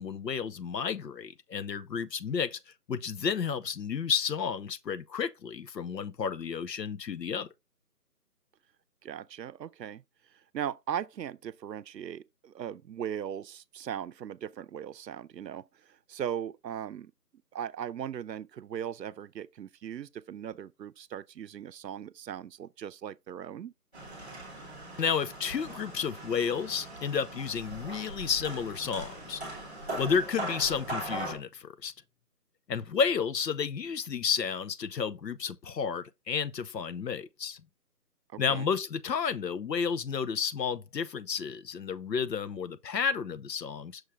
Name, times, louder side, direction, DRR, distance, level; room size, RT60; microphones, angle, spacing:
voice 1, 0.0-2.6 2.9-7.5 25.0-29.4 30.0-31.9 32.7-37.6 38.4-44.0, left 6 dB, 85° left, 0.8 m, -31 dB
voice 2, 9.0-10.0 10.5-17.1 17.5-23.7 38.3-38.7, right 9 dB, 85° right, 0.6 m, -38 dB
sound 1, 23.9-31.3, right 1 dB, 5° left, 1.3 m, -40 dB
6.4 x 3.1 x 4.8 m
figure-of-eight pair, 175°, 48 cm